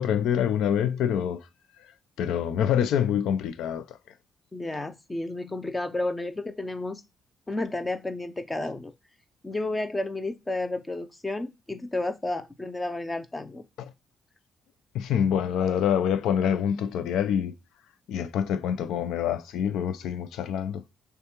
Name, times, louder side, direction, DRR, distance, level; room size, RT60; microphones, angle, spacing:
voice 1, 0.0-1.5 2.2-4.0 13.8-13.9 14.9-17.6 18.1-20.8, left 9 dB, 85° left, 0.6 m, -26 dB
voice 2, 4.5-7.0 7.5-8.9 9.4-13.6, left 2 dB, 20° left, 0.6 m, -31 dB
6.5 x 2.4 x 3.0 m
cardioid pair, 90°, 0 cm